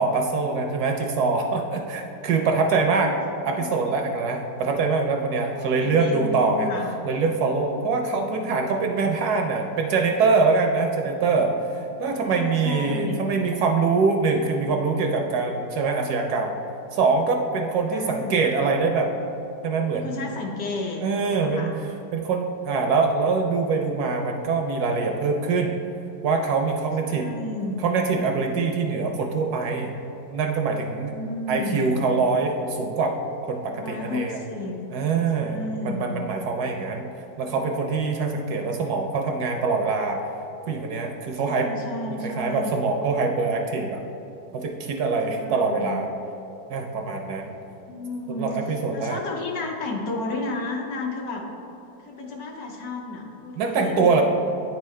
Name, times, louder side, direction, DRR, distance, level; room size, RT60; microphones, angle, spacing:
voice 1, 0.0-3.2 3.5-6.7 7.0-16.6 16.9-19.1 19.6-20.2 21.0-21.7 22.1-25.8 26.2-27.3 27.8-30.0 30.3-31.1 31.5-33.2 33.4-34.4 34.9-37.1 37.4-40.2 40.7-41.7 42.2-44.0 44.5-46.1 46.7-47.5 48.4-49.2 53.6-54.2, right 4 dB, 70° right, 3 dB, 1.0 m, -24 dB
voice 2, 2.8-3.8 5.5-6.9 8.0-8.6 12.1-13.2 17.9-18.5 19.9-21.0 21.3-21.7 27.0-27.8 31.1-32.0 33.7-34.8 35.3-36.1 41.5-42.8 45.3-46.0 47.9-48.6 48.9-51.5 52.0-54.2, left 2 dB, 65° left, 0 dB, 1.1 m, -33 dB
9.3 x 4.5 x 3.2 m, 2.9 s
omnidirectional pair, 1.9 m